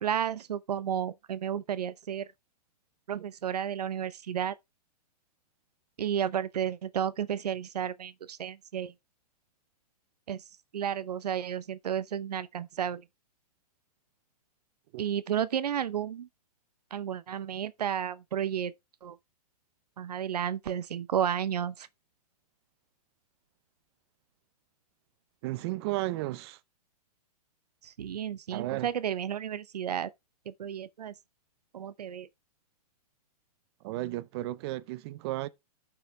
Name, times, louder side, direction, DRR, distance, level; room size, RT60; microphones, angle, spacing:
voice 1, 0.0-2.3 3.1-4.6 6.0-8.9 10.3-10.4 10.7-13.0 15.0-16.3 16.9-18.7 19.0-19.2 20.0-21.9 27.8-30.1 30.5-31.1 31.7-32.3, right 9 dB, 90° right, 0.7 m, -32 dB
voice 2, 25.4-26.6 28.5-28.9 33.8-35.5, right 17 dB, 40° right, 0.7 m, -33 dB
14.0 x 5.7 x 2.2 m
hypercardioid pair, 140°, 20 cm